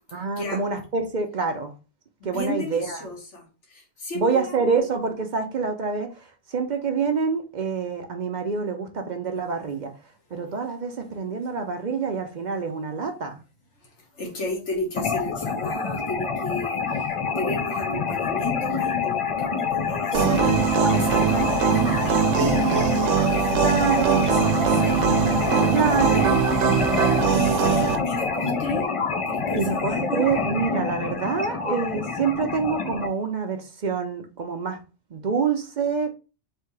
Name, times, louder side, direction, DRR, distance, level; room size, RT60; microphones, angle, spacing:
voice 1, 0.1-1.7 2.2-3.1 4.1-9.9 10.3-13.4 20.1-20.4 23.6-24.3 25.7-26.4 29.5-34.8 35.1-36.1, right 5 dB, 50° right, 0.6 m, -26 dB
voice 2, 2.2-3.4 3.7-4.8 11.3-11.4 14.2-20.6 20.9-26.2 27.0-28.9 29.3-30.3, left 1 dB, 75° left, 1.8 m, -33 dB
sound 1, 15.0-33.1, left 5 dB, 45° left, 0.4 m, -27 dB
sound 2, 20.1-28.0, right 8 dB, 80° right, 0.9 m, -22 dB
3.4 x 2.8 x 4.6 m
omnidirectional pair, 1.2 m